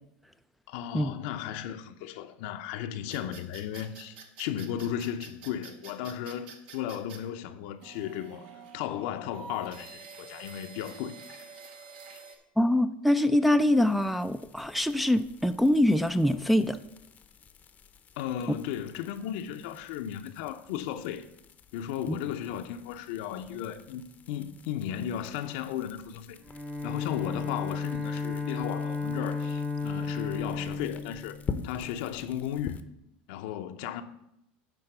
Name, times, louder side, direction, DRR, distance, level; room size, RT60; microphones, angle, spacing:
voice 1, 0.7-8.5 8.7-11.5 12.1-12.2 18.2-21.3 21.7-26.4 26.8-31.4 31.6-32.8 33.3-34.0, left 10 dB, 70° left, 0.6 m, -35 dB
sound 1, 3.1-7.2 7.8-12.4, right 5 dB, 80° right, 1.3 m, -47 dB
voice 2, 12.6-16.8 22.1-22.2, left 1 dB, ahead, 0.4 m, -24 dB
sound 2, 13.7-32.8, left 6 dB, 30° left, 0.7 m, -47 dB
Bowed string instrument, 26.4-32.1, left 4 dB, 20° right, 1.6 m, -34 dB
9.8 x 4.0 x 6.7 m
supercardioid pair, 115°, 5 cm